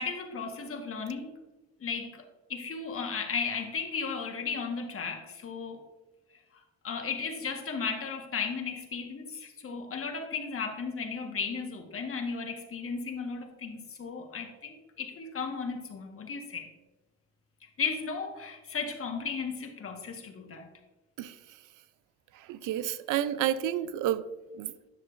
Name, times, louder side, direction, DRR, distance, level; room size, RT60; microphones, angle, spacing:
voice 1, 0.0-1.3 1.8-2.2 2.5-5.8 6.8-16.7 17.8-20.7, left 5 dB, 45° left, 4 dB, 1.4 m, -35 dB
voice 2, 22.3-24.2 24.5-24.7, right 11 dB, 90° right, 14 dB, 0.5 m, -30 dB
10.5 x 6.4 x 2.6 m, 1.1 s
cardioid pair, 90°, 30 cm